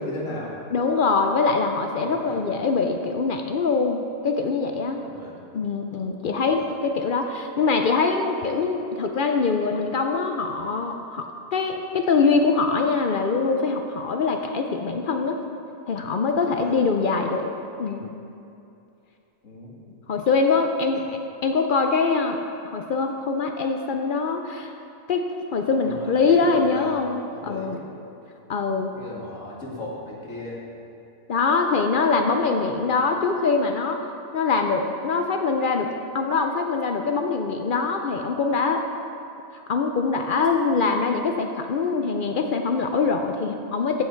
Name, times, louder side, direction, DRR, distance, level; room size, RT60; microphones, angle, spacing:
voice 1, 0.0-0.6 2.0-2.4 5.0-5.3 6.3-6.6 16.4-16.7 19.4-19.7 25.8-27.0 27.3-27.9 28.9-30.6 32.7-32.8, left 1 dB, 60° left, -4 dB, 2.2 m, -36 dB
voice 2, 0.7-5.0 5.5-15.4 15.9-17.5 17.8-18.2 20.1-21.0 21.4-22.4 22.7-24.8 25.1-25.3 25.5-27.8 28.5-28.9 31.3-34.0 34.3-35.9 36.1-38.8 39.5-44.0, left 4 dB, 75° left, 4 dB, 0.4 m, -23 dB
15.0 x 5.8 x 4.4 m, 2.7 s
omnidirectional pair, 1.5 m